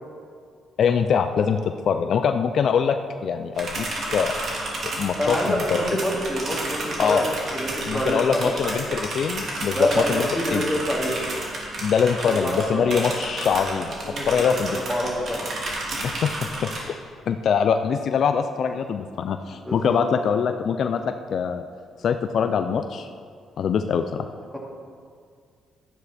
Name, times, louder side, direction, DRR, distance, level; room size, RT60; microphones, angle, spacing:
voice 1, 0.8-4.3 5.0-5.9 7.0-7.2 7.8-10.7 11.8-13.9 14.3-14.8 16.0-16.7 17.3-21.6 22.0-23.1 23.6-24.3, left 7 dB, 60° left, 8 dB, 0.5 m, -23 dB
sound 1, 3.6-16.8, right 2 dB, 55° right, 2.9 m, -31 dB
voice 2, 5.1-7.3 7.5-8.9 9.8-11.2 12.3-13.1 14.0-15.5 19.6-20.0, equal, 5° right, -3 dB, 2.8 m, -27 dB
12.0 x 9.7 x 4.3 m, 2.1 s
cardioid pair, 90°, 0 cm